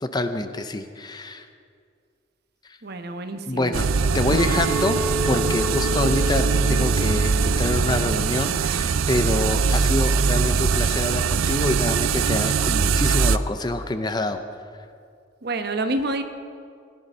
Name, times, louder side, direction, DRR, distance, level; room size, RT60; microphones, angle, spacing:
voice 1, 0.0-1.5 2.6-2.8 3.5-3.9 4.1-5.0 5.2-14.4, left 2 dB, 20° left, 9 dB, 0.5 m, -26 dB
voice 2, 2.8-3.8 15.4-16.2, right 2 dB, 50° right, 7 dB, 1.0 m, -28 dB
sound 1, 3.7-13.4, right 5 dB, 85° right, 0.5 m, -22 dB
Chink clink, 4.4-9.6, left 2 dB, 25° right, 2.0 m, -32 dB
18.0 x 11.0 x 5.5 m, 2.3 s
head